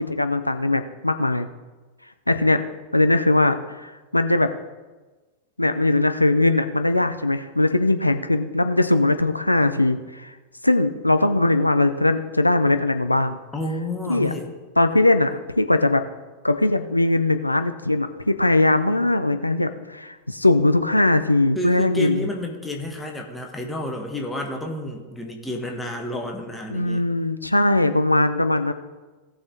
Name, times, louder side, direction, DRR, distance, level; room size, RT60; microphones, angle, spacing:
voice 1, 0.0-1.5 2.3-2.6 2.9-4.5 5.6-10.3 10.6-13.4 14.1-14.3 14.8-16.0 16.4-22.3 26.7-28.7, left 2 dB, 85° left, 9 dB, 0.6 m, -20 dB
voice 2, 13.5-14.5 21.5-27.0, left 1 dB, 10° left, 1 dB, 1.5 m, -30 dB
18.0 x 6.3 x 3.9 m, 1.2 s
figure-of-eight pair, 90°, 0 cm